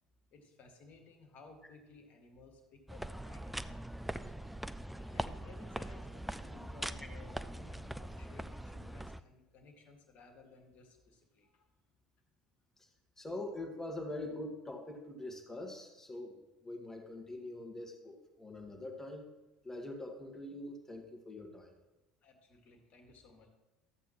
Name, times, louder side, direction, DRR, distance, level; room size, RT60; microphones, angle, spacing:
voice 1, 0.3-11.7 22.2-23.5, left 3 dB, 45° left, 4 dB, 1.7 m, -58 dB
sound 1, 2.9-9.2, right 1 dB, 5° right, 0.4 m, -42 dB
voice 2, 13.2-19.3 19.6-21.8, left 1 dB, 15° left, 2 dB, 1.6 m, -44 dB
13.0 x 8.1 x 3.0 m, 1.1 s
figure-of-eight pair, 65°, 4 cm